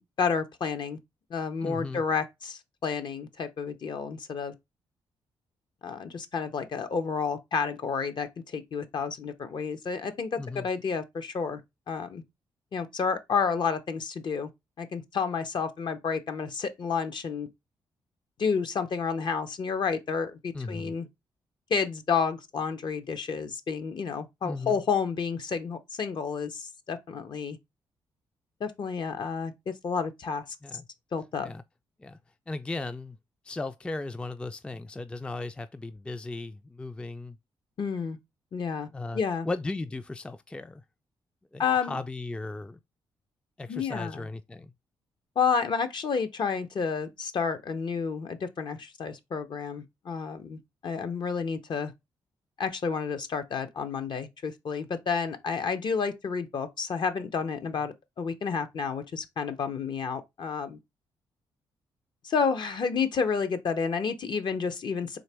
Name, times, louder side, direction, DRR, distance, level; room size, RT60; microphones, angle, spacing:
voice 1, 0.2-1.0 1.3-4.5 5.8-11.6 11.9-12.2 12.7-14.5 14.8-17.5 18.4-21.1 21.7-27.6 28.6-30.4 31.1-31.5 37.8-38.2 38.5-38.9 39.1-39.5 41.6-42.0 43.7-44.3 45.4-51.9 52.6-60.8 62.2-65.2, left 5 dB, 55° left, 0.7 m, -30 dB
voice 2, 1.6-2.0 10.4-10.7 20.5-21.0 24.4-24.8 30.6-30.9 31.4-31.6 32.0-32.2 32.5-33.2 33.4-37.4 38.9-40.8 41.5-42.8 43.6-44.7, left 2 dB, 10° left, 0.3 m, -36 dB
3.9 x 2.9 x 3.3 m
cardioid pair, 65°, 9 cm